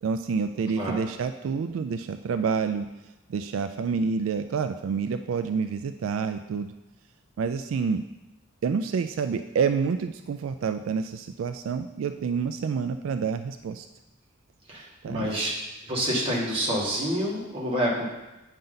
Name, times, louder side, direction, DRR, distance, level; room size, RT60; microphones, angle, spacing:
voice 1, 0.0-2.9 3.3-6.7 7.4-8.0 8.6-13.9 15.0-15.4, right 5 dB, 80° right, 9 dB, 0.3 m, -28 dB
voice 2, 14.7-15.5 15.8-18.1, equal, 30° right, -5 dB, 2.0 m, -28 dB
8.9 x 5.4 x 3.9 m, 1.0 s
head